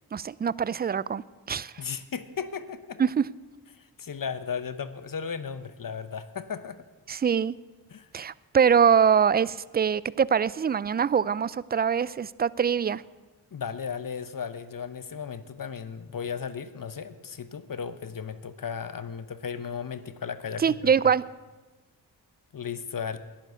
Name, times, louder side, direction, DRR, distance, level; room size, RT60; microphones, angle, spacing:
voice 1, 0.1-1.8 3.0-3.3 7.1-7.6 8.1-13.0 20.6-21.2, right 7 dB, 25° right, 21 dB, 0.3 m, -24 dB
voice 2, 1.8-3.0 3.8-6.8 7.9-8.1 13.5-20.9 22.5-23.2, left 6 dB, 50° left, 13 dB, 0.9 m, -35 dB
12.0 x 10.5 x 6.9 m, 1.2 s
cardioid pair, 45°, 41 cm